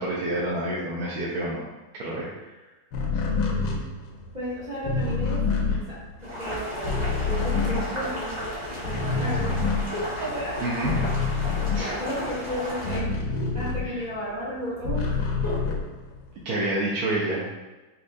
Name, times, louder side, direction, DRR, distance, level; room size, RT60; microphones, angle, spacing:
voice 1, 0.0-1.6 1.9-2.5 10.6-10.9 11.7-11.9 13.8-14.0 16.4-17.4, right 1 dB, 70° right, -5 dB, 0.9 m, -28 dB
sound 1, 2.9-8.5 8.8-14.2 14.6-16.4, left 4 dB, 85° left, 1.3 m, -27 dB
voice 2, 4.3-9.5 9.9-10.6 11.7-13.1 13.5-15.7 17.3-17.4, equal, 45° right, -9 dB, 0.5 m, -34 dB
Boiling, 6.2-13.0, left 1 dB, 30° right, 0.9 m, -34 dB
4.2 x 2.4 x 2.6 m, 1.1 s
omnidirectional pair, 1.9 m